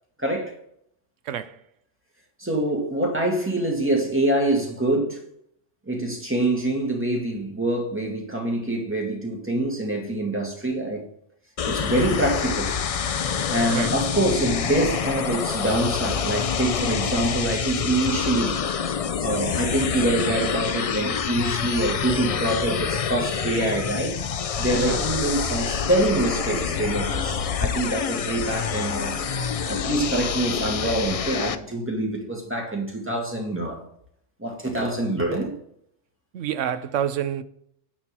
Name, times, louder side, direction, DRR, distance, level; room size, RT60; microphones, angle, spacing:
voice 1, 0.2-0.5 2.4-5.2 5.9-11.0 11.7-12.7 13.5-18.6 19.2-24.2 24.5-29.2 29.7-33.8 34.4-35.5, right 1 dB, 10° right, 2.1 m, -25 dB
voice 2, 1.2-1.6 13.7-13.9 24.7-25.0 36.3-37.4, right 9 dB, 90° right, 1.0 m, -28 dB
sound 1, 11.6-31.5, left 7 dB, 55° left, 0.4 m, -27 dB
sound 2, 24.5-32.0, left 2 dB, 85° left, 2.8 m, -35 dB
10.0 x 4.4 x 7.4 m
omnidirectional pair, 1.2 m